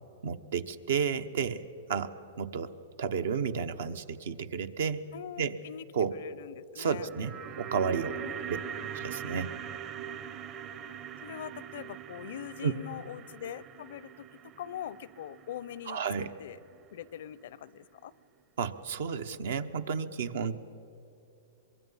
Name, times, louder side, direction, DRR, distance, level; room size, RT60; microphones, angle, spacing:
voice 1, 0.2-1.6 1.9-2.7 3.0-5.0 5.4-5.6 5.9-6.1 6.8-8.2 8.5-8.6 8.9-9.5 12.6-12.7 15.9-16.3 18.6-20.6, right 6 dB, 75° right, 10 dB, 1.0 m, -32 dB
voice 2, 5.1-5.9 6.1-7.1 8.2-8.9 11.2-14.3 14.6-16.6 16.9-18.1, left 10 dB, 65° left, 20 dB, 0.5 m, -43 dB
sound 1, 6.8-17.1 17.3-17.4, right 9 dB, 35° right, 0.8 m, -42 dB
24.0 x 22.5 x 5.7 m, 2.8 s
hypercardioid pair, 135°, 0 cm